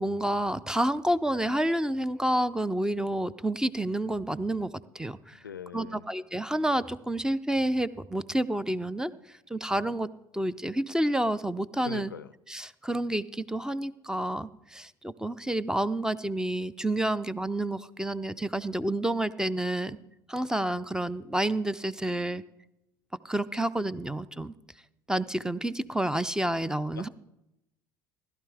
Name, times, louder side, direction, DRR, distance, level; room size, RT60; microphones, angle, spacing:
voice 1, 0.0-4.7 4.9-5.4 5.7-9.1 9.5-10.1 10.3-12.1 12.5-20.0 20.3-22.4 23.2-24.5 25.1-27.1, right 1 dB, 5° right, 17 dB, 0.5 m, -29 dB
voice 2, 5.3-6.1 11.8-12.3 26.9-27.1, left 7 dB, 85° left, 16 dB, 0.4 m, -42 dB
16.0 x 11.5 x 3.4 m, 0.87 s
figure-of-eight pair, 60°, 11 cm